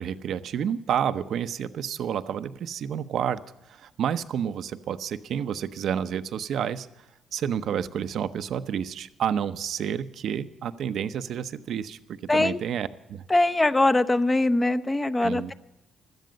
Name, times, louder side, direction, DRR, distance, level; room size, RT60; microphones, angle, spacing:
voice 1, 0.0-3.4 3.7-7.1 7.3-13.3 15.2-15.5, right 8 dB, 70° right, 12 dB, 0.7 m, -30 dB
voice 2, 12.3-12.6 13.3-15.5, left 2 dB, 15° left, 11 dB, 0.8 m, -22 dB
17.0 x 12.5 x 5.3 m, 0.91 s
cardioid pair, 90°, 0 cm